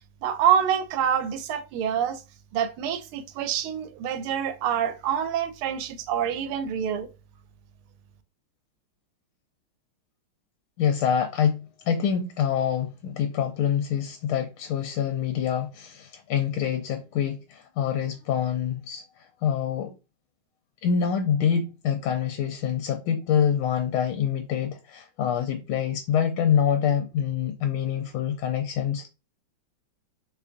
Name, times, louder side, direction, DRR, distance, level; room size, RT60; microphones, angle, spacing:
voice 1, 0.2-2.2 2.5-7.1, right 8 dB, 85° right, 1.4 m, -26 dB
voice 2, 10.8-19.0 19.4-19.9 20.8-29.1, left 8 dB, 80° left, 1.4 m, -26 dB
3.4 x 3.3 x 2.5 m
omnidirectional pair, 2.3 m